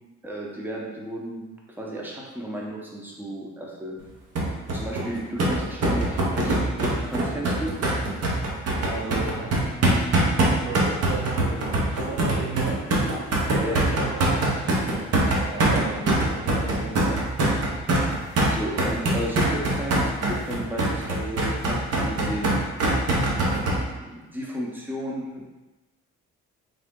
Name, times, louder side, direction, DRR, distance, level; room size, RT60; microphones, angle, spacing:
voice 1, 0.2-1.5 1.8-4.0 4.7-7.8 13.6-13.8 15.7-15.8 18.4-22.6 23.7-25.4, equal, 5° right, -3 dB, 0.8 m, -33 dB
sound 1, 4.4-23.8, right 2 dB, 55° right, 0.9 m, -23 dB
voice 2, 8.7-9.5 10.6-12.8 13.3-17.2, right 3 dB, 85° right, -2 dB, 0.8 m, -34 dB
3.7 x 2.0 x 3.6 m, 1.1 s
cardioid pair, 90°, 30 cm